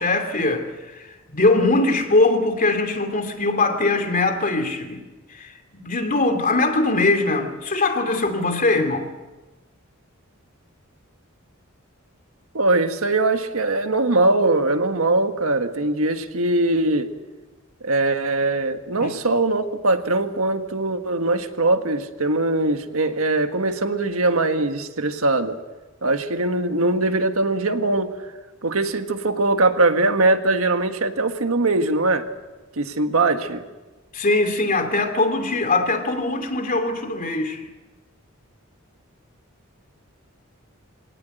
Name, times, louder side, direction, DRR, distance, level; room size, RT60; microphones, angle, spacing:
voice 1, 0.0-5.0 5.3-9.1 19.0-19.1 34.1-37.7, left 2 dB, 40° left, 2.8 m, -21 dB
voice 2, 12.5-17.1 17.8-25.6 26.0-28.1 28.6-32.2 32.8-33.6, right 2 dB, 80° right, 1.6 m, -21 dB
24.0 x 18.5 x 7.8 m
head